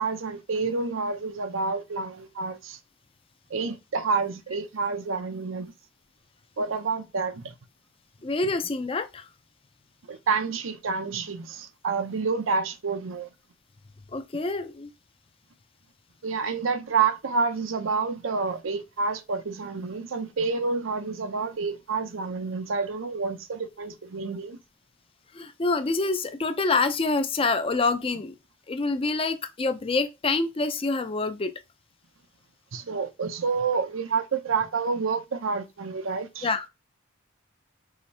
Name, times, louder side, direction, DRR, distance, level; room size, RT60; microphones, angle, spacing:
voice 1, 0.0-2.8 3.5-5.7 6.6-7.5 10.1-13.3 16.2-24.6 32.7-36.5, right 4 dB, 80° right, 0.6 m, -28 dB
voice 2, 8.2-9.3 14.1-14.9 25.3-28.3 28.7-31.5 36.4-36.7, left 3 dB, 25° left, 0.4 m, -26 dB
4.9 x 3.1 x 2.7 m
head